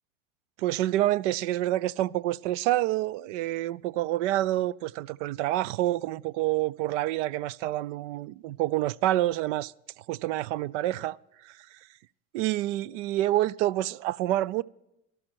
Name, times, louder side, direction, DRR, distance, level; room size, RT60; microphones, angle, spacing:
voice 1, 0.6-11.9 12.3-14.6, right 15 dB, 65° right, 0.5 m, -28 dB
12.5 x 12.5 x 4.6 m
hypercardioid pair, 85°, 40 cm